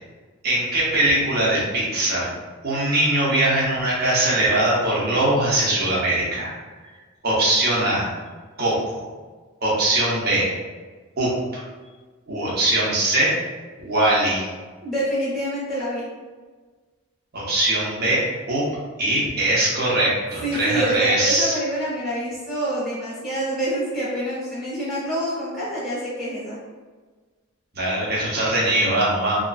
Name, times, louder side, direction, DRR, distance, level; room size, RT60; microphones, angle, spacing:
voice 1, 0.4-2.3 2.6-6.5 7.2-8.1 8.6-9.0 9.6-10.5 11.2-11.6 12.3-13.3 13.8-14.5 17.3-18.2 18.5-18.7 19.0-21.6 27.7-29.4, right 1 dB, 45° right, -6 dB, 0.7 m, -21 dB
voice 2, 14.8-16.0 20.4-26.6, right 1 dB, ahead, -8 dB, 0.9 m, -26 dB
2.9 x 2.4 x 2.3 m, 1.4 s
head